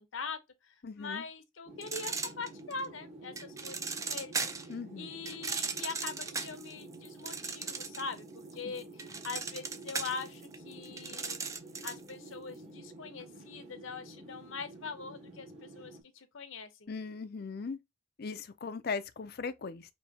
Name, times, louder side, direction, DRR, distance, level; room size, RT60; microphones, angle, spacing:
voice 1, 0.0-4.7 5.0-11.4 11.8-16.9, left 4 dB, 75° left, 0.8 m, -43 dB
voice 2, 0.8-1.2 4.7-5.1 8.7-8.8 16.9-17.8 18.2-19.9, left 5 dB, 50° left, 0.5 m, -39 dB
sound 1, 1.7-16.0, right 2 dB, 35° right, 1.1 m, -50 dB
sound 2, 1.8-2.8 3.4-4.7 5.2-8.2 8.5-12.1, right 4 dB, 15° right, 0.3 m, -37 dB
5.5 x 2.8 x 2.7 m
head